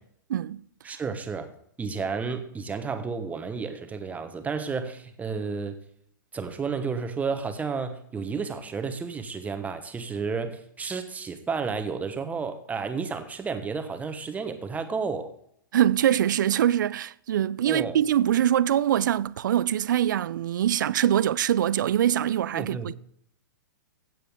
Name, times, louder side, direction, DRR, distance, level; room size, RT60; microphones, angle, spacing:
voice 1, 0.3-0.6 15.7-22.9, right 11 dB, 65° right, 0.4 m, -23 dB
voice 2, 0.8-1.5 1.8-5.8 6.3-15.3 17.7-18.0 22.5-22.9, right 5 dB, 15° right, 1.2 m, -32 dB
16.0 x 7.7 x 3.7 m
figure-of-eight pair, 110°, 11 cm